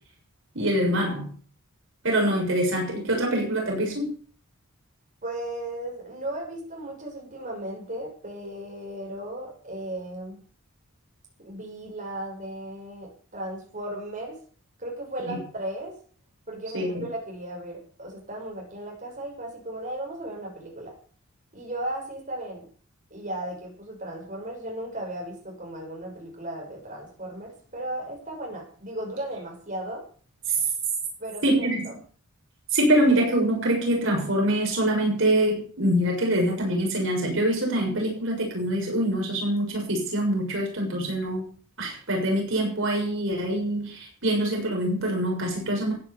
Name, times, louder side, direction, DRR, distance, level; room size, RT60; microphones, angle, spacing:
voice 1, 0.5-1.3 2.0-4.1 15.3-15.4 16.7-17.0 31.4-31.9 32.7-41.5 41.8-45.9, right 1 dB, 60° right, 0 dB, 6.8 m, -24 dB
voice 2, 5.2-10.4 11.4-14.4 14.8-15.9 16.5-20.9 21.5-22.7 23.1-30.0 31.2-31.7, right 1 dB, 35° right, -1 dB, 6.4 m, -36 dB
15.5 x 10.5 x 6.9 m, 0.43 s
head